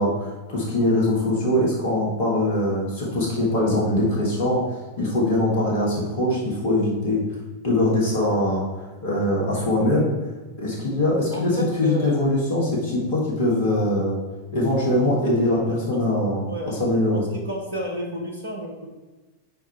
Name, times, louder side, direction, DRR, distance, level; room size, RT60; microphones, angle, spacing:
voice 1, 0.0-4.6 5.0-7.2 7.6-8.6 9.0-10.1 10.6-14.2 14.5-15.6 15.9-17.2, left 1 dB, 55° left, -3 dB, 2.2 m, -22 dB
voice 2, 11.3-12.2 15.4-15.5 15.9-16.0 16.5-16.8 17.1-18.9, right 1 dB, 70° right, 1 dB, 1.1 m, -31 dB
5.9 x 4.6 x 4.6 m, 1.2 s
figure-of-eight pair, 90°, 0 cm